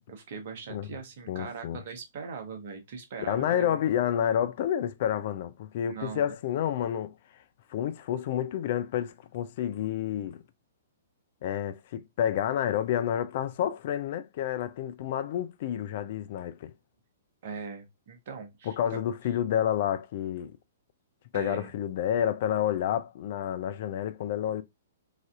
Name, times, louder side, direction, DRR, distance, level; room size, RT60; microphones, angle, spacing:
voice 1, 0.1-3.8 5.8-6.2 17.4-19.0 21.3-21.7, right 5 dB, 50° right, 0.8 m, -40 dB
voice 2, 1.3-1.8 3.3-7.1 7.7-10.4 11.4-16.7 18.6-20.6 21.3-24.6, left 10 dB, 45° left, 0.3 m, -29 dB
3.2 x 2.5 x 2.3 m
figure-of-eight pair, 115°, 0 cm